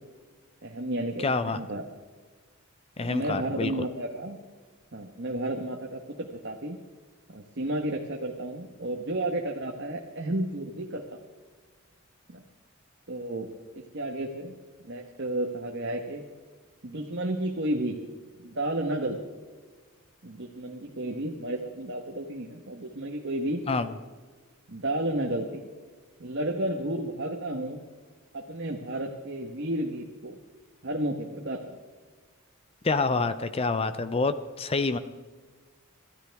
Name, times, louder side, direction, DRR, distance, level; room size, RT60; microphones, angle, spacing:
voice 1, 0.6-1.8 3.0-4.4 4.9-6.8 7.3-11.2 12.3-12.4 13.1-13.5 13.8-14.5 14.8-16.2 16.8-18.0 18.4-19.2 20.2-23.6 24.7-25.6 26.2-27.8 28.3-30.4 30.8-31.8, right 1 dB, 55° right, 2 dB, 1.3 m, -32 dB
voice 2, 1.2-1.6 3.0-3.7 23.7-23.9 32.8-35.0, left 3 dB, 25° left, 11 dB, 0.5 m, -27 dB
26.0 x 13.0 x 3.5 m, 1.5 s
head